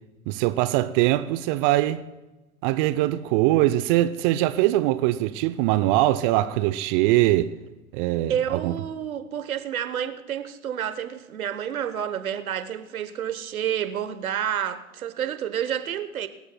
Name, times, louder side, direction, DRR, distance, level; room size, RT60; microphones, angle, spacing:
voice 1, 0.3-2.0 2.6-7.5 7.9-8.8, right 15 dB, 40° right, 0.7 m, -22 dB
voice 2, 8.3-16.3, right 9 dB, 75° right, 1.1 m, -29 dB
25.0 x 13.5 x 2.3 m
figure-of-eight pair, 100°, 42 cm